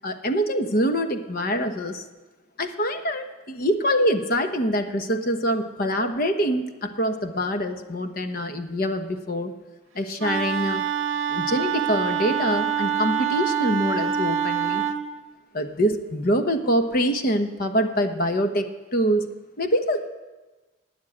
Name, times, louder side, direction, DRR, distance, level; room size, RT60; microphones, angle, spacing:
voice 1, 0.0-2.0 2.6-9.5 9.9-10.8 11.3-14.8 15.5-19.3 19.6-20.1, equal, 45° left, 7 dB, 1.1 m, -25 dB
Wind instrument woodwind instrument, 10.2-15.0, right 8 dB, 70° right, 0.9 m, -25 dB
12.5 x 9.3 x 8.7 m, 1.2 s
head